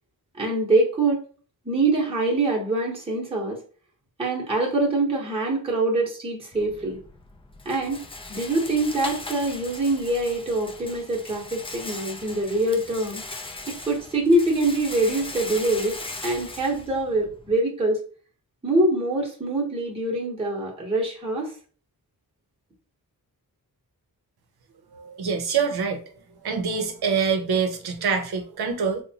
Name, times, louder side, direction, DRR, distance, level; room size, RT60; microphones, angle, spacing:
voice 1, 0.3-1.2 1.6-3.6 4.2-7.0 7.6-8.0 8.3-13.2 13.7-16.0 16.2-18.0 18.6-21.5, right 2 dB, 15° right, -3 dB, 0.8 m, -24 dB
Rattle, 6.5-17.6, left 3 dB, 15° left, 0.3 m, -39 dB
voice 2, 24.9-26.0 26.4-29.0, right 6 dB, 85° right, 6 dB, 0.7 m, -25 dB
4.0 x 2.2 x 2.7 m, 0.42 s
wide cardioid pair, 125°, 37 cm